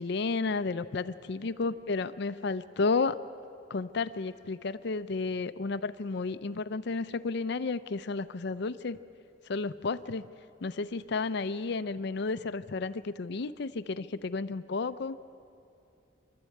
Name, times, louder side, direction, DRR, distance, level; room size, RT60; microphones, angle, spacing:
voice 1, 0.0-3.2 3.7-9.0 9.5-10.3 10.6-15.2, left 4 dB, 65° left, 13 dB, 0.5 m, -32 dB
25.5 x 12.5 x 8.5 m, 2.6 s
head